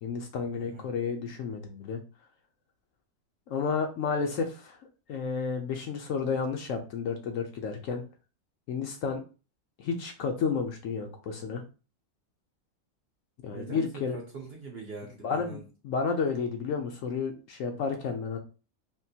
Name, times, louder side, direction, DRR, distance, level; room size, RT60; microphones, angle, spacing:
voice 1, 0.0-2.0 3.5-4.8 5.1-8.0 8.7-9.2 9.8-11.6 13.4-14.2 15.2-15.6 15.8-18.4, left 5 dB, 65° left, 4 dB, 0.9 m, -31 dB
voice 2, 0.5-0.9 13.5-13.9 14.1-15.6, right 3 dB, 55° right, 1 dB, 0.7 m, -42 dB
3.6 x 2.5 x 2.7 m, 0.33 s
omnidirectional pair, 1.6 m